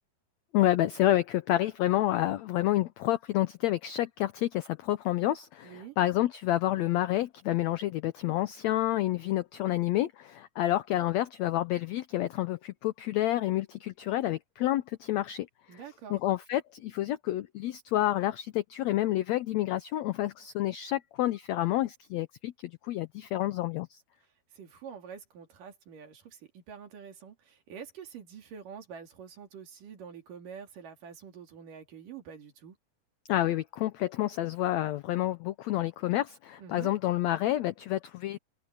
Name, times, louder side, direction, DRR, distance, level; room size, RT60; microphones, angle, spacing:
voice 1, 0.5-15.5 16.1-24.0 33.3-38.4, left 14 dB, 90° left, 1.5 m, -29 dB
voice 2, 5.6-6.0 15.7-16.2 24.5-32.8 36.6-37.0, right 7 dB, 70° right, 4.3 m, -46 dB
omnidirectional pair, 4.0 m